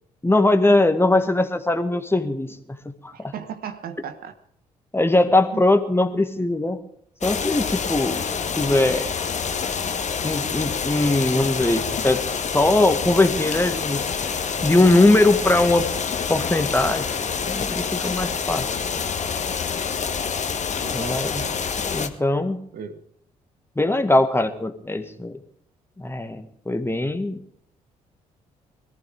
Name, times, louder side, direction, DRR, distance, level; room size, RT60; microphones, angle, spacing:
voice 1, 0.2-2.6 3.0-3.3 4.9-6.8 7.2-8.2 8.6-9.1 10.2-12.2 12.5-14.0 14.6-15.9 16.3-17.1 17.4-18.7 20.9-21.4 21.9-22.6 23.8-25.4 26.0-27.4, left 2 dB, 15° left, 7 dB, 1.9 m, -20 dB
voice 2, 3.1-4.3 5.5-5.6 20.8-21.5 22.7-23.0, right 8 dB, 55° right, 8 dB, 1.2 m, -36 dB
sound 1, 7.2-22.1, left 6 dB, 40° left, 1.4 m, -27 dB
22.0 x 14.5 x 3.6 m, 0.67 s
figure-of-eight pair, 40°, 18 cm